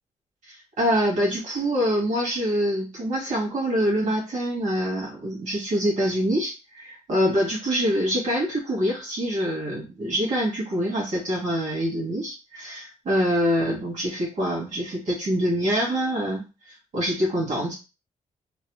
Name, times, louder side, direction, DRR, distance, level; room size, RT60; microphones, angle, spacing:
voice 1, 0.4-17.7, equal, 65° right, -2 dB, 1.5 m, -25 dB
3.0 x 2.1 x 3.0 m, 0.28 s
wide cardioid pair, 180°, 13 cm